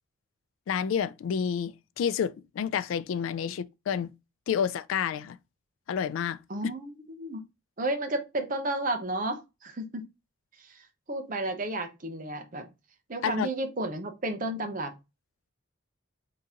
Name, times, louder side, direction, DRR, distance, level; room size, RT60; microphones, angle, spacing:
voice 1, 0.7-4.1 4.5-5.4 5.9-6.4 13.2-13.5, left 7 dB, 75° left, 0.3 m, -29 dB
voice 2, 6.5-7.4 7.8-10.0 10.6-12.7 13.1-14.9, right 1 dB, 40° right, 0.8 m, -32 dB
3.8 x 2.8 x 3.6 m
head